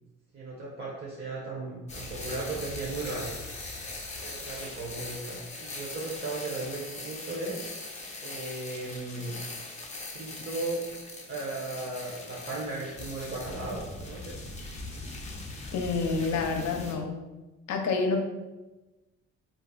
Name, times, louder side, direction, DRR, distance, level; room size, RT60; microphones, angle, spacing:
voice 1, 0.3-3.3 4.2-7.7 8.2-9.3 10.1-10.8 11.3-14.3, right 2 dB, 35° right, -6 dB, 0.8 m, -36 dB
sound 1, 1.9-16.9, left 2 dB, 25° left, 0.6 m, -40 dB
voice 2, 15.7-17.2 17.7-18.2, left 4 dB, 65° left, 3 dB, 0.6 m, -28 dB
2.5 x 2.0 x 3.9 m, 1.1 s
cardioid pair, 90°, 30 cm